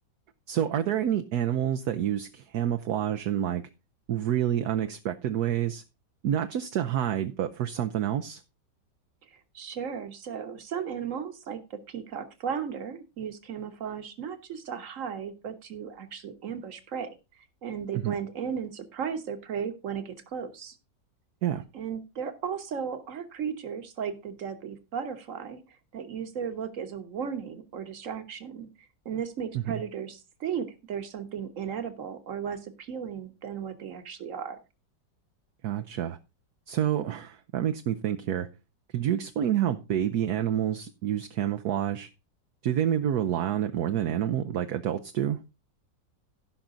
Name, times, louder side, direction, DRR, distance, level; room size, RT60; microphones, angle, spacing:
voice 1, 0.5-3.6 4.1-5.8 6.2-8.4 18.0-18.1 21.4-21.6 29.7-29.8 35.6-36.2 36.7-38.5 38.9-42.1 42.6-45.4, right 10 dB, 65° right, 1.2 m, -28 dB
voice 2, 9.3-17.1 17.6-20.8 21.7-25.6 25.9-28.7 29.0-34.6, right 7 dB, 50° right, 1.5 m, -35 dB
16.0 x 5.9 x 3.8 m
omnidirectional pair, 1.9 m